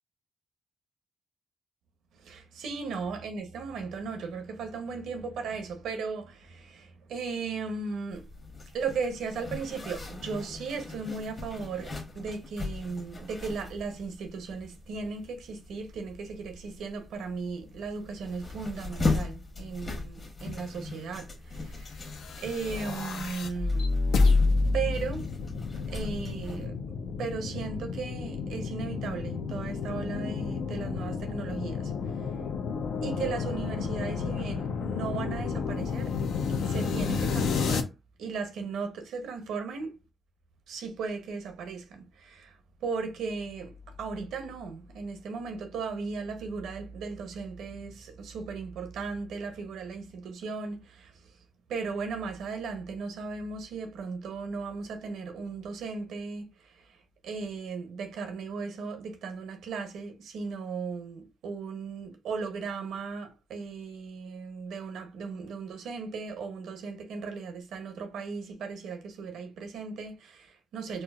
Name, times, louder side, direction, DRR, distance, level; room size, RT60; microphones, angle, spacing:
voice 1, 2.2-8.3 8.7-22.0 22.4-23.9 24.7-25.3 25.9-31.9 33.0-36.1 36.6-37.9 38.2-40.0 40.7-42.5 42.8-51.1 51.7-56.5 57.2-71.0, right 4 dB, 85° right, 0.7 m, -36 dB
Zipper (clothing), 8.1-26.7, left 3 dB, 35° left, 1.1 m, -38 dB
sound 1, 22.0-37.8, left 4 dB, 85° left, 0.5 m, -30 dB
4.3 x 2.0 x 2.2 m
cardioid pair, 80°, 0 cm